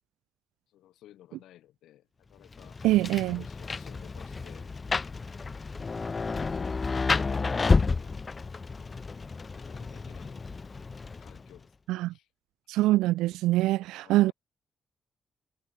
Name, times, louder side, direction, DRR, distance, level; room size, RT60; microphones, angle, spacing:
voice 1, 0.7-2.8 3.2-4.7 8.9-10.4 11.2-11.7 12.1-12.3 14.0-14.3, left 13 dB, 85° left, 6.6 m, -56 dB
Rain, 2.5-11.6, left 4 dB, 35° left, 0.6 m, -31 dB
voice 2, 2.8-3.4 11.9-12.1 12.7-14.3, right 16 dB, 90° right, 0.3 m, -24 dB
supercardioid pair, 55°, 0 cm